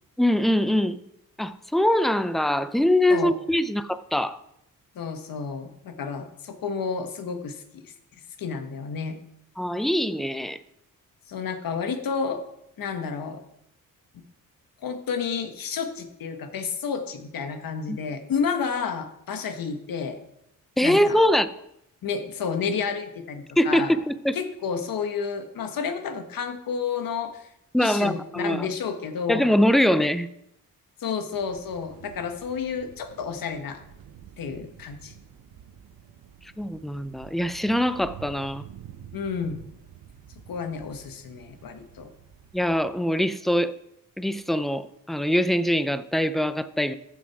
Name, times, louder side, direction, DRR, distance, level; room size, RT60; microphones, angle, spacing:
voice 1, 0.2-1.0 1.4-4.4 9.6-10.6 17.9-18.0 20.8-21.5 23.6-24.4 27.7-28.7 29.3-30.3 36.6-38.6 42.5-43.7 44.2-46.9, equal, ahead, 13 dB, 0.4 m, -23 dB
voice 2, 4.9-7.9 8.4-9.2 11.3-12.4 12.8-13.4 14.1-14.2 14.8-20.2 20.8-21.2 22.0-23.9 24.3-27.5 27.8-29.5 31.0-33.8 34.4-35.1 39.1-39.6 40.5-42.1, left 6 dB, 80° left, 7 dB, 1.3 m, -31 dB
sound 1, 31.3-42.8, right 9 dB, 85° right, 1.0 m, -48 dB
14.5 x 6.1 x 4.7 m, 0.79 s
cardioid pair, 115°, 34 cm